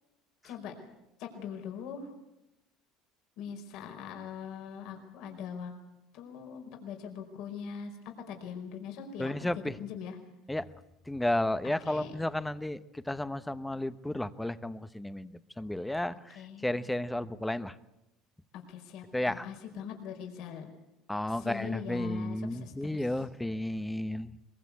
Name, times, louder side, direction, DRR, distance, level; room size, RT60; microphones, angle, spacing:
voice 1, 1.2-2.1 3.4-5.7 6.1-9.5 9.8-10.2 11.8-12.1 16.3-16.8 18.7-20.7 21.4-23.1, left 7 dB, 70° left, 3 dB, 4.9 m, -42 dB
voice 2, 9.2-9.7 10.5-10.7 11.1-17.7 19.1-19.5 21.1-24.3, left 1 dB, 5° left, 13 dB, 1.0 m, -33 dB
23.0 x 22.0 x 8.4 m, 0.90 s
cardioid pair, 120°, 0 cm